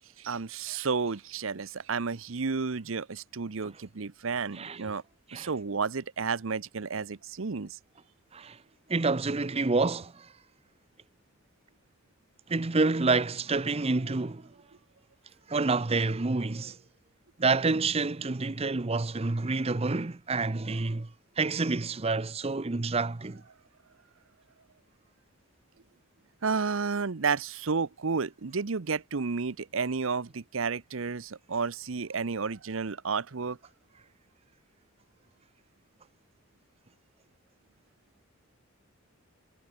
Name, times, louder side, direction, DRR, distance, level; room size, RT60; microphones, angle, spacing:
voice 1, 0.2-5.0 5.3-7.8 26.4-33.6, right 5 dB, 70° right, 0.8 m, -31 dB
voice 2, 8.9-10.3 12.5-14.5 15.5-16.8 17.4-21.1 21.4-23.4, right 3 dB, 30° right, 0.7 m, -28 dB
head